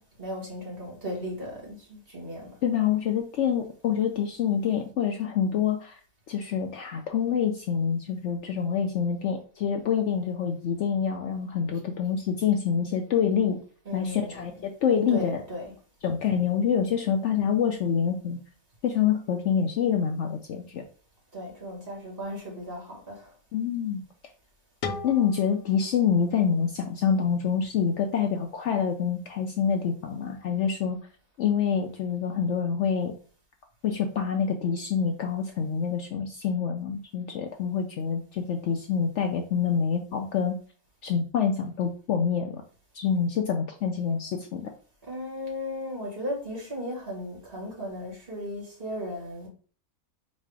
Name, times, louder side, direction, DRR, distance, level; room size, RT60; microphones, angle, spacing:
voice 1, 0.0-2.6 13.8-14.5 15.1-15.7 21.3-23.3 45.0-49.5, equal, 40° right, -2 dB, 2.0 m, -36 dB
voice 2, 2.6-6.0 6.3-13.6 13.9-15.4 16.0-18.4 18.8-20.8 23.5-24.1 25.0-31.0 31.4-33.1 33.8-40.6 41.0-42.6 42.9-44.7, left 7 dB, 65° left, 4 dB, 0.8 m, -26 dB
sound 1, 24.8-27.7, left 5 dB, 85° left, 1.1 m, -40 dB
4.1 x 2.4 x 4.7 m, 0.41 s
omnidirectional pair, 1.5 m